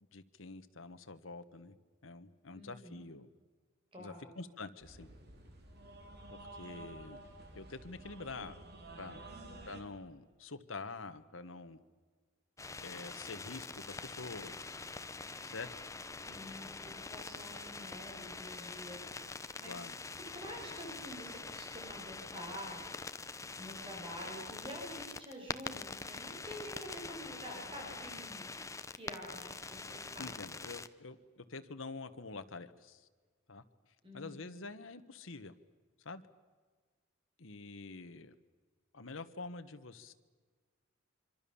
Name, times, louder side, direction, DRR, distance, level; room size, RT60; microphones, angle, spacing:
voice 1, 0.1-1.8 2.0-3.3 4.0-5.1 6.3-7.3 7.5-8.6 9.0-9.2 9.7-11.8 12.8-14.9 15.4-15.7 19.7-19.9 30.2-33.0 33.5-33.6 34.1-35.5 36.0-36.2 37.4-38.3 38.9-40.1, left 3 dB, 75° left, 10 dB, 1.4 m, -46 dB
voice 2, 2.5-3.1 3.9-4.4 9.3-9.7 16.2-19.9 20.3-23.1 23.4-28.5 29.0-30.3 34.0-34.4, equal, 25° right, 0 dB, 5.2 m, -48 dB
sound 1, 4.8-9.8, right 2 dB, 50° right, 3.9 m, -51 dB
sound 2, 12.6-30.9, left 3 dB, 15° left, 0.8 m, -45 dB
26.0 x 25.0 x 7.2 m, 1.5 s
head